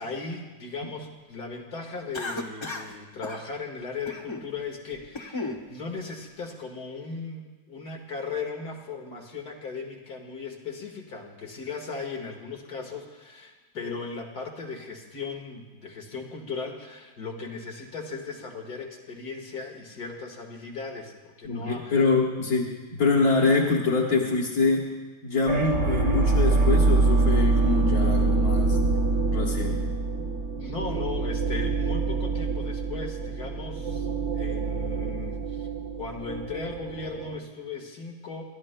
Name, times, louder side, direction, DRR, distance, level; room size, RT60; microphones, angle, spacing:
voice 1, 0.0-22.0 30.6-34.1 34.3-35.7 36.0-38.4, left 4 dB, 90° left, 1 dB, 2.2 m, -37 dB
Cough, 2.1-2.9 3.2-3.4 4.1-4.5 4.9-5.6, left 2 dB, 20° left, 1.0 m, -34 dB
voice 2, 21.5-24.9 25.2-28.8 29.3-29.8, left 3 dB, 70° left, -4 dB, 1.9 m, -25 dB
sound 1, 25.5-37.4, right 3 dB, 55° right, 1.5 m, -25 dB
28.5 x 12.5 x 2.2 m, 1.3 s
omnidirectional pair, 1.6 m